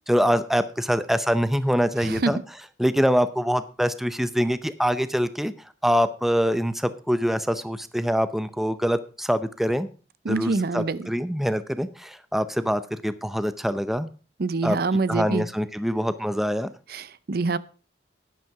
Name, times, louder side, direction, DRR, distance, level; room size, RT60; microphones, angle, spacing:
voice 1, 0.1-2.4 2.8-5.5 5.8-9.9 10.3-14.1 14.6-14.8 15.1-16.7, equal, ahead, 13 dB, 0.6 m, -24 dB
voice 2, 2.0-2.3 10.2-11.1 14.4-15.5 16.9-17.6, right 3 dB, 60° right, 17 dB, 0.6 m, -25 dB
11.0 x 10.5 x 4.7 m, 0.36 s
head